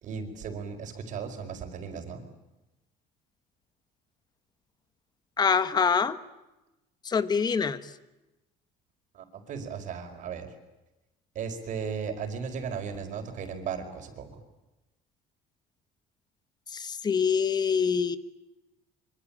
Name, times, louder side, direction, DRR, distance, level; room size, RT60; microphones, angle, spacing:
voice 1, 0.0-2.2 9.1-10.5 11.3-14.4, right 6 dB, 50° right, 6 dB, 5.0 m, -36 dB
voice 2, 5.4-6.2 7.0-7.8 16.7-18.2, left 6 dB, 25° left, 13 dB, 1.5 m, -25 dB
25.5 x 25.5 x 8.8 m, 1.0 s
cardioid pair, 160°, 17 cm